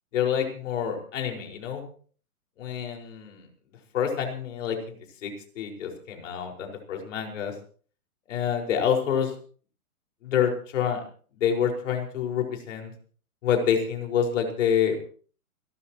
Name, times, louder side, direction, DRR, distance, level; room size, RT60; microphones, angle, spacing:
voice 1, 0.1-1.8 2.6-3.4 3.9-5.0 5.2-7.5 8.3-9.3 10.2-11.0 11.4-12.9 13.4-15.2, left 8 dB, 55° left, 2 dB, 5.2 m, -27 dB
28.5 x 12.5 x 3.0 m, 0.43 s
hypercardioid pair, 145°, 44 cm